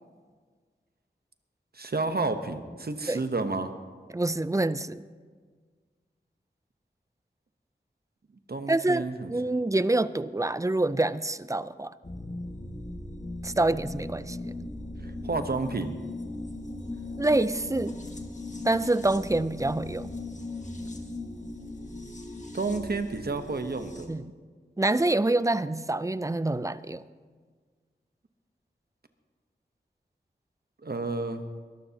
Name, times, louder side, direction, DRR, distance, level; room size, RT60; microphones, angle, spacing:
voice 1, 1.7-3.7 8.5-9.3 15.0-16.0 22.5-24.2 30.8-31.4, right 3 dB, 60° right, 8 dB, 0.9 m, -30 dB
voice 2, 4.1-5.1 8.7-9.0 9.3-11.9 13.4-14.5 17.2-18.0 18.6-20.1 24.1-24.2 24.8-27.0, right 2 dB, 15° right, 16 dB, 0.4 m, -26 dB
sound 1, 12.0-24.1, left 2 dB, 40° left, 1.6 m, -38 dB
22.5 x 13.0 x 2.9 m, 1.5 s
wide cardioid pair, 60°, 18 cm